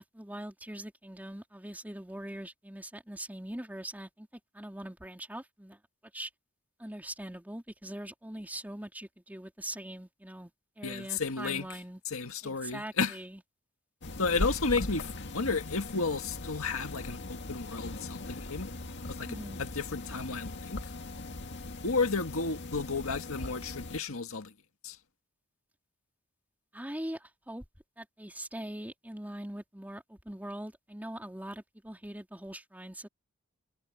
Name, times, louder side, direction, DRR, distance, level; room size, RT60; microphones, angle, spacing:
voice 1, 0.0-4.3 4.5-5.8 6.1-6.3 6.8-12.0 12.4-13.4 19.3-19.6 26.7-27.6 28.0-33.1, right 1 dB, 10° right, 3.7 m, -42 dB
voice 2, 10.8-11.7 12.1-13.2 14.2-18.7 19.2-20.8 21.8-24.5 24.8-25.0, left 4 dB, 80° left, 1.9 m, -32 dB
sound 1, 14.0-24.0, left 2 dB, 60° left, 1.9 m, -39 dB
head